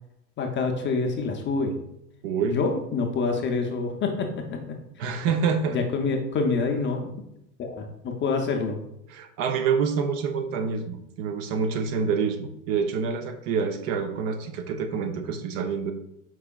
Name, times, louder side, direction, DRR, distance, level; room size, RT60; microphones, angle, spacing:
voice 1, 0.4-1.8 2.4-5.1 5.7-7.2 7.6-8.8, left 4 dB, 25° left, 2 dB, 0.5 m, -27 dB
voice 2, 2.2-2.6 5.0-5.8 9.1-15.9, right 6 dB, 50° right, 6 dB, 0.7 m, -27 dB
4.8 x 4.6 x 2.3 m, 0.79 s
hypercardioid pair, 90°, 48 cm